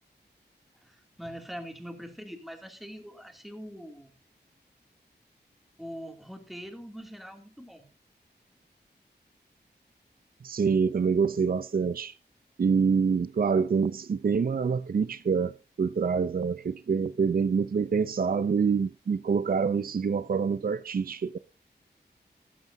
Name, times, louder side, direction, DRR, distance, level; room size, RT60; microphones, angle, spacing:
voice 1, 0.8-4.1 5.8-7.9, equal, ahead, 2.6 m, -43 dB
voice 2, 10.4-12.2 12.6-21.4, right 5 dB, 55° right, 0.5 m, -26 dB
15.0 x 12.0 x 2.7 m
wide cardioid pair, 75°, 18 cm